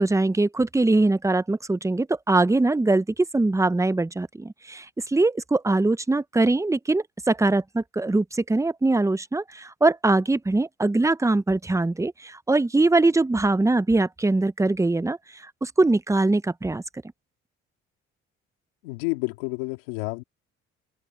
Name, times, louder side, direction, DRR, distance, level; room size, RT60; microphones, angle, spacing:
voice 1, 0.0-16.8, right 2 dB, 10° right, 0.9 m, -22 dB
voice 2, 18.8-20.2, left 25 dB, 90° left, 2.9 m, -30 dB
supercardioid pair, 65°, 30 cm